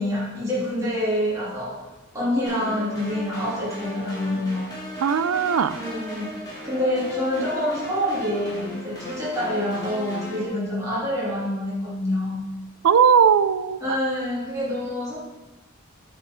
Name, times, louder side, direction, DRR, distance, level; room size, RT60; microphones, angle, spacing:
voice 1, 0.0-1.8 2.1-4.7 5.7-12.4 13.8-15.3, left 1 dB, 15° right, -9 dB, 3.0 m, -26 dB
sound 1, 2.5-10.5, left 1 dB, 20° left, 2.9 m, -36 dB
voice 2, 5.0-5.8 12.8-14.0, right 7 dB, 85° right, 14 dB, 0.4 m, -18 dB
9.5 x 4.8 x 5.0 m, 1.1 s
head